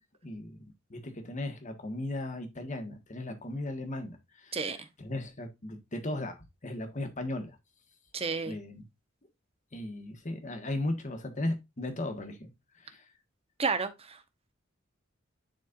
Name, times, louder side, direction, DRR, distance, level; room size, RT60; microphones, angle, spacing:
voice 1, 0.2-6.3 6.6-7.5 8.4-8.8 9.7-12.5 12.8-13.0, left 1 dB, 40° left, 1.5 m, -36 dB
voice 2, 4.5-4.9 8.1-8.6 13.6-14.2, right 4 dB, 30° right, 0.9 m, -31 dB
10.5 x 4.3 x 2.5 m
head